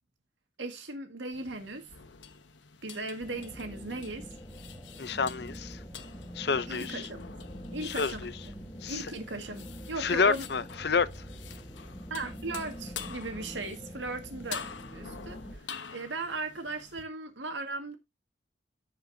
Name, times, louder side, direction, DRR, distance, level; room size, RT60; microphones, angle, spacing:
voice 1, 0.6-1.8 2.8-4.2 6.7-7.2 7.7-8.3 8.9-10.5 12.1-15.6 15.9-18.0, right 3 dB, 90° right, 1.8 m, -37 dB
sound 1, 1.3-17.0, left 7 dB, 90° left, 1.0 m, -47 dB
sound 2, 3.2-15.6, equal, 20° left, 1.5 m, -45 dB
voice 2, 5.0-5.8 6.4-7.1 7.8-8.3 8.8-9.0 10.0-11.1, left 5 dB, 65° left, 0.6 m, -29 dB
15.0 x 5.3 x 2.7 m
head